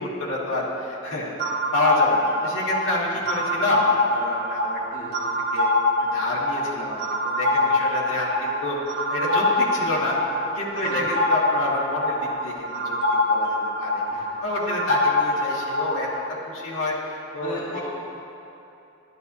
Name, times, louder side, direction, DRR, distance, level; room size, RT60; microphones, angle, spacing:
voice 1, 0.0-1.3 1.7-5.2 5.5-5.7 6.0-10.2 10.5-16.1 16.5-17.8, left 2 dB, 85° left, -6 dB, 1.8 m, -28 dB
sound 1, 1.4-16.2, left 1 dB, 50° right, 0.9 m, -24 dB
voice 2, 17.4-17.8, left 1 dB, 40° left, -9 dB, 1.6 m, -37 dB
12.5 x 11.0 x 2.7 m, 2.9 s
head